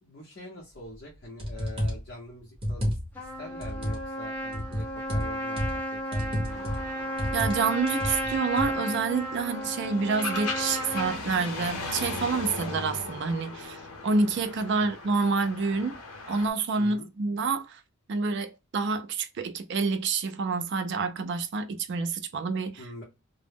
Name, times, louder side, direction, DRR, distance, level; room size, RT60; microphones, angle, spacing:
voice 1, 0.0-6.7 14.8-14.9 16.8-17.1 22.8-23.0, left 1 dB, 50° left, 0.6 m, -44 dB
sound 1, 0.9-1.0 1.4-2.1 2.6-3.3 3.6-4.1 4.5-5.8 6.1-6.9 7.2-7.6 7.9-8.7, equal, 25° right, 0.9 m, -31 dB
Trumpet, 3.2-11.2, equal, 10° left, 0.7 m, -34 dB
sound 2, 6.5-16.5, left 3 dB, 90° left, 0.7 m, -38 dB
voice 2, 7.3-16.0 16.3-17.8 18.1-22.8, right 4 dB, 55° right, 0.3 m, -28 dB
2.0 x 2.0 x 3.2 m
head